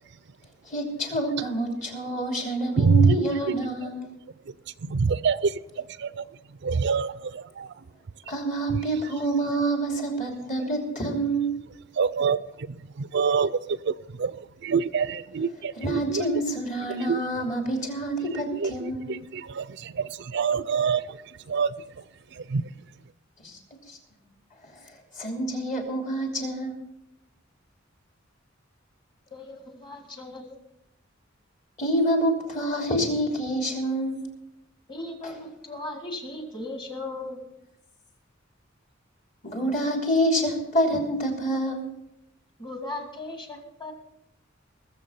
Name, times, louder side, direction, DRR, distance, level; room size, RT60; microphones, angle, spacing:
voice 1, 0.7-4.1 8.3-11.6 15.8-19.2 23.4-23.6 23.9-24.0 24.7-24.8 25.1-26.8 31.8-34.3 35.2-35.5 39.4-41.9, right 1 dB, 40° left, 2 dB, 2.9 m, -27 dB
voice 2, 2.8-3.6 3.8-3.9 4.4-7.9 8.7-8.9 11.9-16.3 16.9-17.2 18.4-22.0 22.3-22.7, right 5 dB, 60° right, 16 dB, 0.5 m, -27 dB
voice 3, 29.3-30.6 34.9-37.4 42.6-43.9, left 2 dB, 25° left, 4 dB, 2.1 m, -37 dB
20.0 x 7.4 x 5.6 m, 0.82 s
head